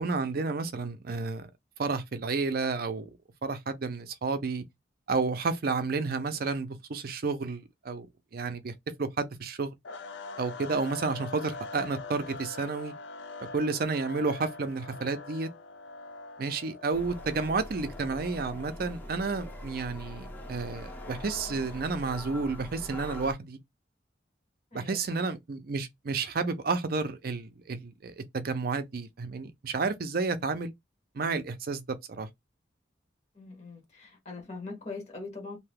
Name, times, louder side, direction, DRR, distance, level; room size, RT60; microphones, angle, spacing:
voice 1, 0.0-1.5 1.8-3.1 3.4-4.6 5.1-8.1 8.3-8.7 9.0-9.7 10.4-12.9 13.5-15.5 16.4-23.6 24.7-30.7 31.1-32.3, right 4 dB, 55° right, 0.5 m, -31 dB
sound 1, 9.8-22.2, left 3 dB, 80° left, 0.6 m, -45 dB
sound 2, 16.9-23.3, left 1 dB, 10° left, 0.6 m, -43 dB
voice 2, 24.7-25.4 30.4-30.5 33.3-35.6, left 3 dB, 40° left, 1.1 m, -42 dB
2.7 x 2.3 x 3.3 m
head